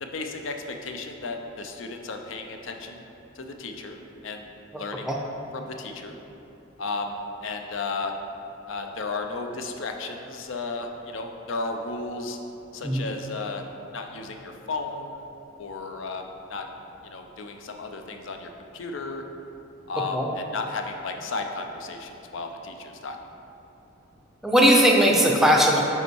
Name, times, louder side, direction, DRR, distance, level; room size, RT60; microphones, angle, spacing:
voice 1, 0.0-3.1 3.4-5.1 5.5-6.2 6.8-8.1 8.7-12.4 12.7-13.6 13.9-15.2 15.6-16.6 17.0-19.2 19.9-23.2, left 3 dB, 75° left, 4 dB, 0.6 m, -34 dB
voice 2, 24.4-25.8, equal, ahead, -1 dB, 0.5 m, -18 dB
5.5 x 5.4 x 4.5 m, 3.0 s
head